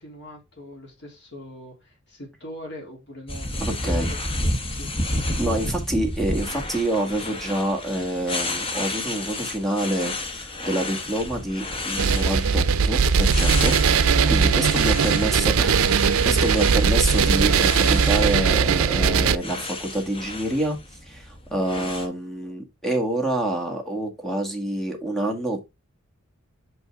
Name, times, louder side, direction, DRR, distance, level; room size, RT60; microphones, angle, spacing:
voice 1, 0.0-5.6 14.0-14.3, equal, 55° left, 3.1 m, -42 dB
sound 1, 3.3-22.1, left 2 dB, 25° left, 1.1 m, -31 dB
voice 2, 3.6-4.1 5.4-20.8 21.1-25.6, right 1 dB, ahead, 1.7 m, -27 dB
sound 2, 12.0-19.3, right 6 dB, 80° right, 0.5 m, -19 dB
5.5 x 5.4 x 3.4 m
head